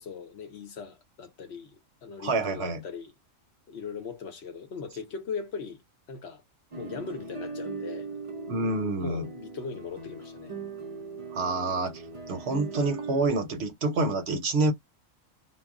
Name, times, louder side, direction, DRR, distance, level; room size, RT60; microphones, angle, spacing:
voice 1, 0.0-3.1 3.7-5.8 6.1-6.4 6.7-8.1 9.0-10.5, left 5 dB, 60° left, 0.9 m, -39 dB
voice 2, 2.2-2.8 8.5-9.3 11.3-12.0 12.3-14.7, right 2 dB, 65° right, 0.8 m, -27 dB
sound 1, 6.7-13.3, right 4 dB, 45° right, 0.4 m, -39 dB
2.3 x 2.1 x 3.5 m
omnidirectional pair, 1.3 m